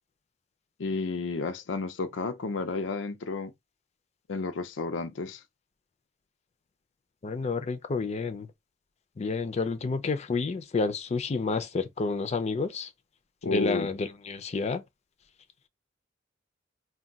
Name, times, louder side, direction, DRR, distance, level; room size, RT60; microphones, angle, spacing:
voice 1, 0.8-3.5 4.3-5.4 13.4-13.9, left 3 dB, 90° left, 0.5 m, -31 dB
voice 2, 7.2-8.5 9.2-12.9 13.4-14.8, left 4 dB, 35° left, 0.4 m, -30 dB
2.3 x 2.2 x 3.9 m
head